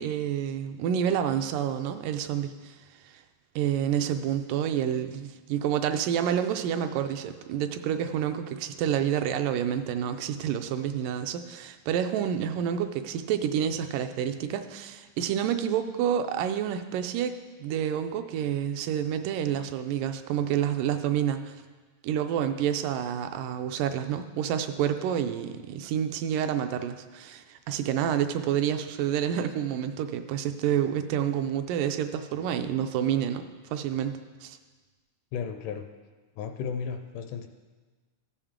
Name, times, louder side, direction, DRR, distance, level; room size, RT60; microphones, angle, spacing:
voice 1, 0.0-2.8 3.0-3.1 3.6-17.4 17.6-21.6 22.0-33.5 33.7-34.6, right 9 dB, 80° right, 8 dB, 2.1 m, -28 dB
voice 2, 35.3-35.9 36.4-37.5, left 6 dB, 80° left, 7 dB, 2.0 m, -34 dB
14.5 x 7.0 x 3.6 m, 1.3 s
omnidirectional pair, 3.9 m